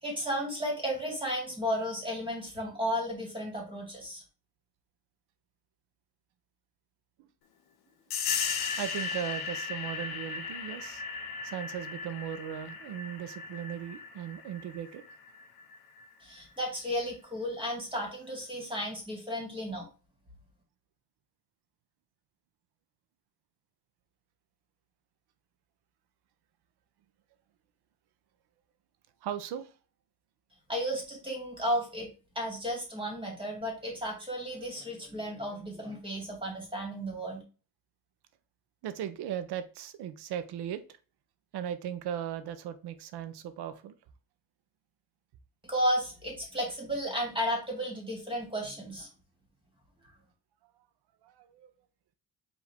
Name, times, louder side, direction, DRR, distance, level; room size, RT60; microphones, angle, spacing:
voice 1, 0.0-4.2 16.2-19.9 30.7-32.1 32.4-37.4 45.6-49.1, equal, 15° right, 0 dB, 1.9 m, -33 dB
sound 1, 8.1-16.4, left 5 dB, 70° left, 0.8 m, -37 dB
voice 2, 8.8-11.0 11.4-15.0 29.2-29.7 38.8-40.8 41.5-43.9 51.2-51.7, right 10 dB, 80° right, 11 dB, 0.7 m, -37 dB
4.9 x 2.7 x 3.4 m, 0.34 s
cardioid pair, 105°, 39 cm